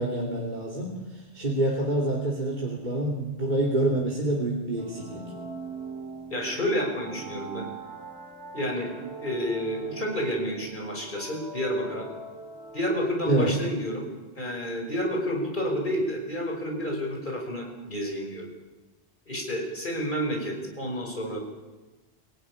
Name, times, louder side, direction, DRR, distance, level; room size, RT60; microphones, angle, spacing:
voice 1, 0.0-5.2 13.3-13.5, right 1 dB, 40° right, -3 dB, 2.9 m, -27 dB
sound 1, 4.8-13.4, right 3 dB, 75° right, 4.7 m, -41 dB
voice 2, 6.3-7.7 8.5-8.9 9.2-12.1 12.7-14.1 14.4-18.5 19.3-21.4, equal, 45° left, 1 dB, 5.8 m, -30 dB
24.0 x 17.0 x 10.0 m, 1.2 s
omnidirectional pair, 1.1 m